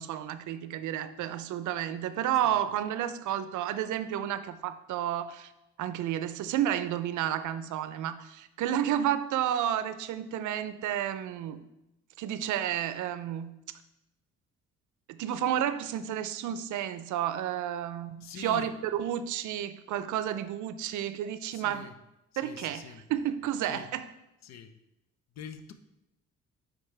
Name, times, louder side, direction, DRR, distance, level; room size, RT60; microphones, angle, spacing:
voice 1, 0.0-5.5 5.8-11.7 12.2-13.6 15.1-21.9 22.4-24.1, right 10 dB, 75° right, 12 dB, 0.5 m, -31 dB
voice 2, 18.2-18.7 21.5-21.9 22.3-23.0 23.6-23.9 24.4-24.7 25.4-25.7, left 7 dB, 60° left, 9 dB, 0.6 m, -44 dB
9.2 x 3.8 x 3.3 m, 0.90 s
cardioid pair, 90°, 30 cm